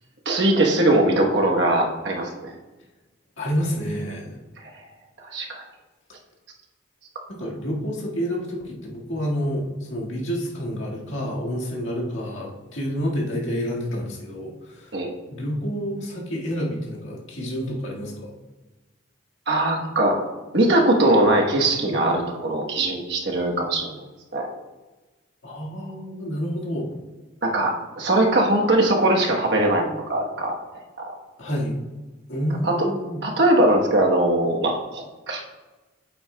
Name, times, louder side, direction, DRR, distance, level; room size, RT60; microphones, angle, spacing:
voice 1, 0.2-2.5 5.3-5.6 14.9-15.1 19.5-20.2 20.5-24.0 24.3-24.5 27.4-30.5 31.0-31.1 32.6-32.7 33.2-35.4, right 1 dB, 60° right, 1 dB, 1.1 m, -21 dB
voice 2, 3.4-4.4 7.3-15.0 15.3-18.3 25.4-27.0 31.4-31.8 32.3-33.2, equal, 80° left, -3 dB, 1.8 m, -29 dB
8.7 x 7.5 x 2.2 m, 1.2 s
head